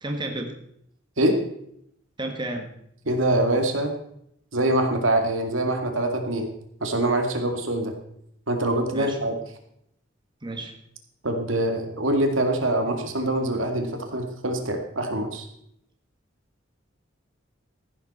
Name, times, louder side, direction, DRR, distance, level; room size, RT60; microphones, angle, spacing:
voice 1, 0.0-0.5 2.2-2.7 8.9-9.2 10.4-10.7, right 1 dB, 25° right, 4 dB, 1.7 m, -31 dB
voice 2, 3.1-3.9 4.5-6.5 6.8-7.9 8.5-9.3 11.2-15.5, right 1 dB, 90° right, 4 dB, 2.3 m, -24 dB
14.5 x 12.0 x 4.3 m, 0.72 s
head